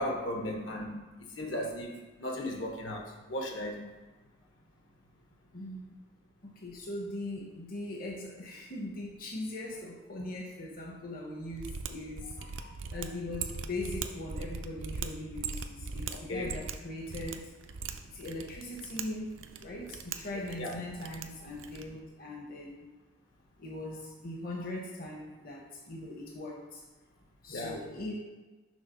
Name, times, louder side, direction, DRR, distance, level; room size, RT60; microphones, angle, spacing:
voice 1, 0.0-3.9 16.3-16.5 20.6-20.7 27.5-27.7, left 1 dB, 80° left, 1 dB, 1.2 m, -36 dB
voice 2, 5.5-6.0 6.4-17.5 18.1-22.8 23.6-26.8 27.4-28.1, left 1 dB, 50° left, -1 dB, 0.8 m, -40 dB
Mechanisms, 11.5-22.0, right 5 dB, 90° right, 0.5 m, -41 dB
6.4 x 3.5 x 5.5 m, 1.2 s
head